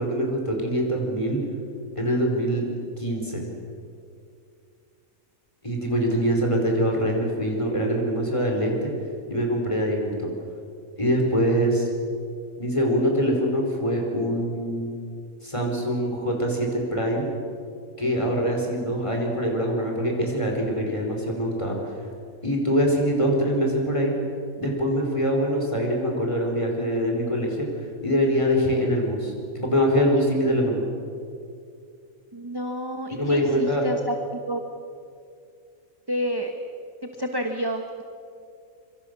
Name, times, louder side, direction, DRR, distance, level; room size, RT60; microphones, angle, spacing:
voice 1, 0.0-1.4 2.0-2.6 3.0-3.4 5.6-8.9 9.3-10.3 11.0-11.9 12.6-14.9 15.4-17.3 18.0-22.0 22.4-24.1 24.6-27.7 28.0-30.8 33.1-33.8, equal, 20° left, 0 dB, 5.0 m, -24 dB
voice 2, 5.9-6.3 32.3-34.6 36.1-36.5 37.2-38.0, equal, 15° right, 4 dB, 1.4 m, -30 dB
26.0 x 24.5 x 6.9 m, 2.4 s
omnidirectional pair, 1.5 m